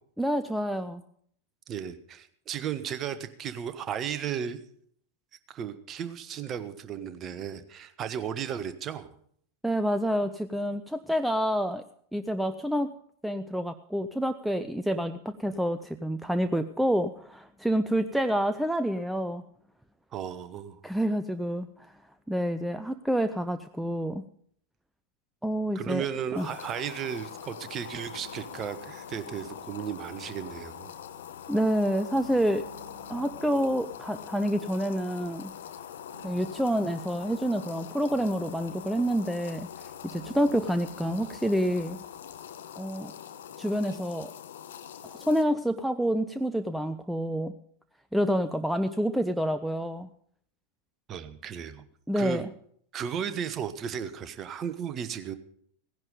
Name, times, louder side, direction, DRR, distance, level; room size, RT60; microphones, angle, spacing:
voice 1, 0.2-1.0 9.6-11.8 12.1-12.9 13.2-19.4 20.8-21.9 22.3-24.2 25.4-26.0 26.4-26.5 31.5-32.6 33.1-35.5 36.2-39.7 40.0-42.0 42.8-43.1 43.6-44.3 45.0-47.5 48.1-50.1 52.1-52.5, equal, ahead, 10 dB, 0.5 m, -28 dB
voice 2, 1.7-4.6 5.5-9.1 20.1-20.8 25.7-30.9 51.1-51.8 52.1-52.4 52.9-55.4, right 8 dB, 30° right, 11 dB, 1.1 m, -35 dB
sound 1, 26.1-42.1, equal, 80° left, 4.5 m, -54 dB
sound 2, 26.3-45.4, left 9 dB, 60° left, 1.0 m, -43 dB
16.5 x 10.5 x 5.2 m, 0.63 s
figure-of-eight pair, 90°, 0 cm